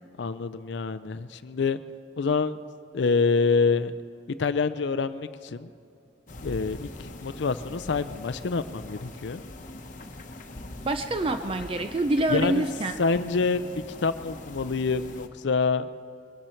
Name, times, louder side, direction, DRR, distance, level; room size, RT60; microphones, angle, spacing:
voice 1, 0.2-1.8 2.2-2.6 2.9-3.9 4.4-5.7 6.4-9.4 12.3-12.6 13.0-15.9, left 4 dB, 65° left, 13 dB, 0.5 m, -26 dB
sound 1, 6.3-15.3, left 1 dB, 45° left, 1.1 m, -42 dB
voice 2, 10.8-13.0, right 2 dB, 30° right, 8 dB, 0.5 m, -26 dB
22.0 x 13.0 x 4.5 m, 2.5 s
head